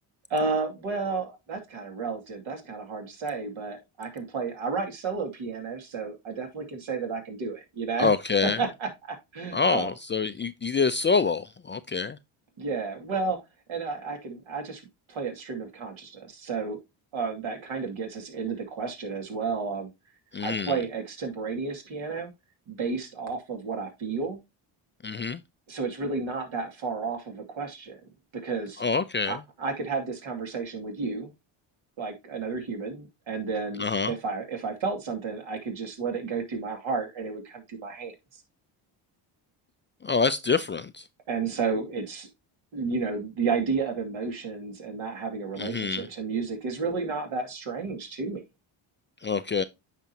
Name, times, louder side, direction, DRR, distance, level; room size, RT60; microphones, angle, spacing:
voice 1, 0.3-8.1 8.6-9.9 12.6-13.4 13.7-14.8 15.1-16.8 17.1-19.9 20.4-22.3 22.7-24.4 25.7-28.0 28.4-28.8 29.3-31.3 32.0-38.4 41.3-42.3 42.7-48.4, right 4 dB, 70° right, 2.5 m, -32 dB
voice 2, 8.0-8.6 9.5-12.2 20.3-20.7 25.0-25.4 28.8-29.4 33.8-34.1 40.0-41.0 45.6-46.1 49.2-49.6, left 4 dB, 25° left, 0.4 m, -26 dB
9.1 x 5.1 x 2.8 m
cardioid pair, 80°, 50 cm